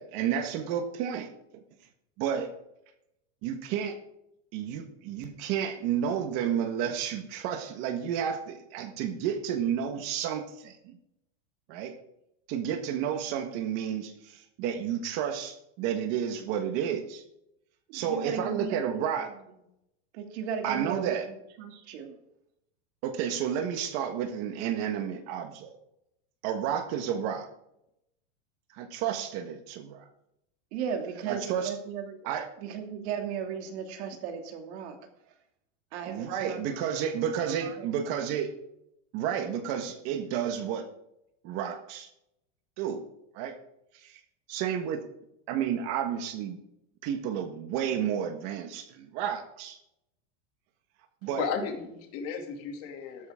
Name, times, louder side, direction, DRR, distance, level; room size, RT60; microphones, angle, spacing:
voice 1, 0.0-1.6 2.2-2.5 3.4-4.0 4.5-11.0 11.7-12.0 12.5-17.2 17.9-19.3 20.6-21.3 23.0-25.8 26.4-27.5 28.7-30.1 31.1-31.7 32.2-32.5 36.0-38.5 39.1-40.9 41.4-42.1 42.8-43.1 43.3-43.6 44.0-44.2 44.5-45.1 45.5-46.6 47.0-49.8 51.2-51.6, right 8 dB, 40° right, 7 dB, 1.5 m, -31 dB
voice 2, 17.9-19.0 20.1-22.2 30.7-34.9 35.9-36.9 37.2-37.9, right 7 dB, 55° right, 4 dB, 2.7 m, -36 dB
voice 3, 51.4-53.3, left 6 dB, 35° left, 3 dB, 2.7 m, -34 dB
13.5 x 13.0 x 3.7 m, 0.80 s
supercardioid pair, 160°, 38 cm